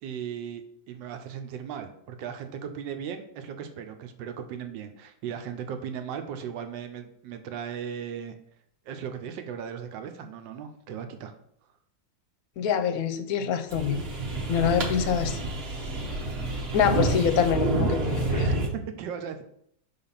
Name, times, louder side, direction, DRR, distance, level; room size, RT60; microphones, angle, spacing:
voice 1, 0.0-8.4 8.9-11.3 18.3-19.4, right 8 dB, 80° right, 7 dB, 1.4 m, -37 dB
voice 2, 12.6-14.0 14.5-15.4 16.7-18.5, left 7 dB, 65° left, 9 dB, 1.0 m, -25 dB
sound 1, 13.7-18.7, right 2 dB, 40° right, 1.0 m, -28 dB
5.8 x 3.9 x 5.6 m, 0.69 s
omnidirectional pair, 2.0 m